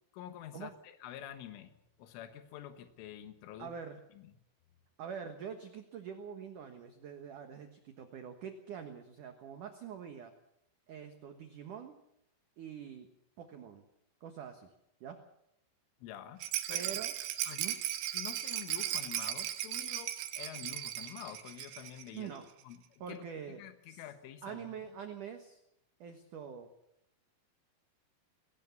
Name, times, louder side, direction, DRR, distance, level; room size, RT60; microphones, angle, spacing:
voice 1, 0.1-1.7 2.0-3.7 4.2-4.3 16.0-16.9 17.5-17.6 18.1-22.3 22.6-24.7, left 11 dB, 90° left, 9 dB, 3.9 m, -48 dB
voice 2, 3.6-4.0 5.0-10.3 10.9-12.0 12.6-13.9 14.2-14.7 15.0-15.3 16.7-17.1 17.6-17.8 22.1-22.5 23.0-23.6 23.9-24.0 24.4-25.6 26.0-26.7, right 7 dB, 65° right, 7 dB, 2.1 m, -45 dB
Rattle, 16.4-22.1 22.4-22.5 22.7-22.8, right 12 dB, 90° right, 4.0 m, -37 dB
21.0 x 18.5 x 7.2 m, 0.79 s
omnidirectional pair, 5.5 m